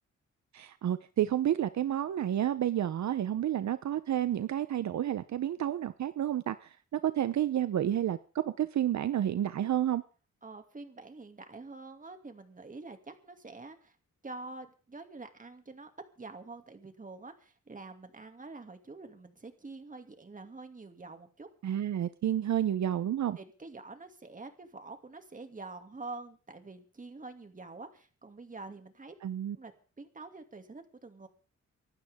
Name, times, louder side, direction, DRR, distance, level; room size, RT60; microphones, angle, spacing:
voice 1, 0.5-10.0 21.6-23.4 29.2-29.6, right 11 dB, 70° right, 13 dB, 0.8 m, -30 dB
voice 2, 10.4-14.0 14.2-21.5 23.4-29.1 29.5-29.7 30.0-31.3, right 3 dB, 25° right, 7 dB, 2.5 m, -46 dB
25.0 x 12.0 x 3.6 m, 0.37 s
cardioid pair, 110°, 29 cm